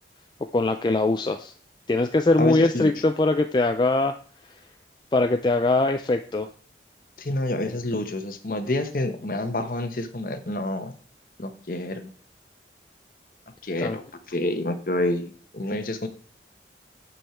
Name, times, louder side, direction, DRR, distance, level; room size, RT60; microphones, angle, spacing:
voice 1, 0.5-1.5 1.9-4.1 5.1-6.5 13.8-14.0, left 2 dB, 25° left, 6 dB, 0.3 m, -22 dB
voice 2, 2.4-2.9 7.2-10.9 11.4-12.1 13.6-14.0 14.3-16.1, left 1 dB, 50° left, 7 dB, 1.0 m, -28 dB
8.4 x 5.5 x 4.4 m, 0.43 s
head